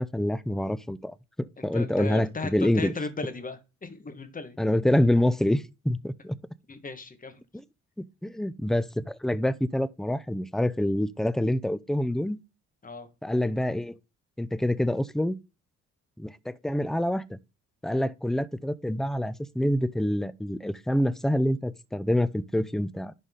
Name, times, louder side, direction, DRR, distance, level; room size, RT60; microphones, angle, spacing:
voice 1, 0.0-2.9 4.6-6.3 8.0-12.4 13.2-14.0 14.4-15.4 16.2-17.4 17.8-23.1, left 1 dB, ahead, 0.5 m, -26 dB
voice 2, 1.6-4.6 6.7-7.4 12.8-13.1, left 4 dB, 25° left, 1.6 m, -36 dB
11.0 x 4.0 x 3.8 m
cardioid pair, 90°, 30 cm